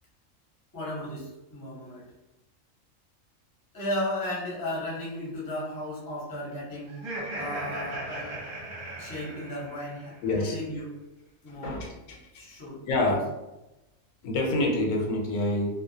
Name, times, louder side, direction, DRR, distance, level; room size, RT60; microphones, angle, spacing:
voice 1, 0.7-2.0 3.7-6.9 7.3-8.4 9.0-10.9 11.4-11.8 12.3-12.8 13.0-13.2, left 1 dB, 25° left, -5 dB, 0.5 m, -35 dB
Laughter, 6.9-10.1, right 1 dB, 50° right, 0.8 m, -37 dB
voice 2, 10.2-10.6 11.5-12.4 12.9-13.2 14.2-15.8, left 2 dB, 85° left, 1 dB, 1.0 m, -27 dB
2.3 x 2.1 x 2.6 m, 0.98 s
omnidirectional pair, 1.3 m